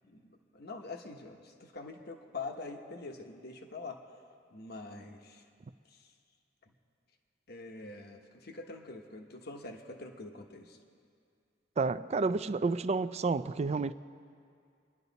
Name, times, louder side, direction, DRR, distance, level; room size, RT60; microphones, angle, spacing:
voice 1, 0.0-4.0 4.5-5.4 5.9-6.0 7.5-10.8, left 3 dB, 60° left, 1.1 m, -45 dB
voice 2, 11.8-13.9, right 4 dB, 35° right, 0.4 m, -30 dB
27.5 x 11.0 x 4.1 m
head